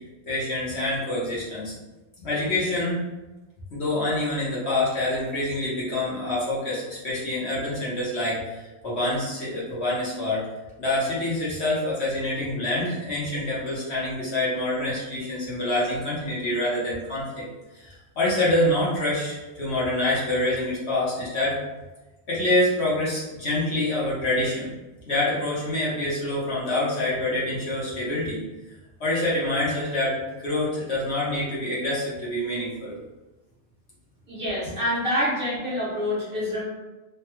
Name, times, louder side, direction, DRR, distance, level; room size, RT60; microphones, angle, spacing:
voice 1, 0.3-1.8 2.2-3.0 3.7-10.4 10.8-17.4 17.7-21.6 22.3-24.7 25.1-28.4 29.0-32.9, left 1 dB, 50° left, -8 dB, 1.1 m, -26 dB
voice 2, 34.3-36.6, left 1 dB, 45° right, -8 dB, 1.0 m, -26 dB
3.3 x 2.2 x 2.9 m, 1.1 s
omnidirectional pair, 1.5 m